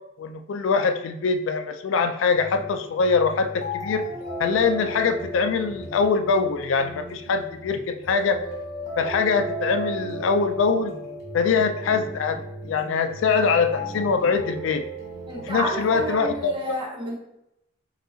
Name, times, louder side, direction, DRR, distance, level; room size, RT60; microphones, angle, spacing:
voice 1, 0.2-4.1 4.4-8.4 9.0-10.9 11.3-14.8 15.3-16.8, left 5 dB, 80° left, 8 dB, 0.3 m, -23 dB
sound 1, 2.3-16.3, right 1 dB, 40° left, 1.4 m, -35 dB
voice 2, 15.3-17.1, right 1 dB, 25° right, -2 dB, 0.7 m, -30 dB
3.9 x 2.7 x 2.6 m, 0.83 s
head